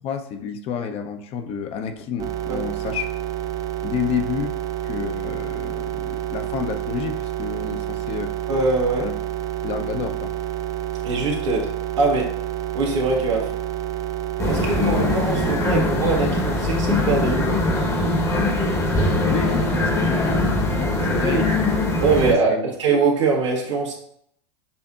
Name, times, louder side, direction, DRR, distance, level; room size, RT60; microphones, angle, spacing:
voice 1, 0.0-3.1 3.8-4.5 4.8-8.3 9.0-9.1 9.6-10.3 19.2-21.5 22.2-22.7, left 7 dB, 40° left, 6 dB, 0.6 m, -30 dB
sound 1, 2.2-15.6, right 12 dB, 25° right, 0.4 m, -29 dB
voice 2, 8.5-9.1 11.0-11.7 12.0-12.3 12.7-13.5 14.4-17.5 21.2-21.4 22.0-23.9, right 4 dB, 80° right, -2 dB, 1.4 m, -22 dB
sound 2, 14.4-22.3, left 2 dB, 20° left, 0.9 m, -21 dB
6.9 x 2.7 x 2.4 m, 0.68 s
hypercardioid pair, 95°, 15 cm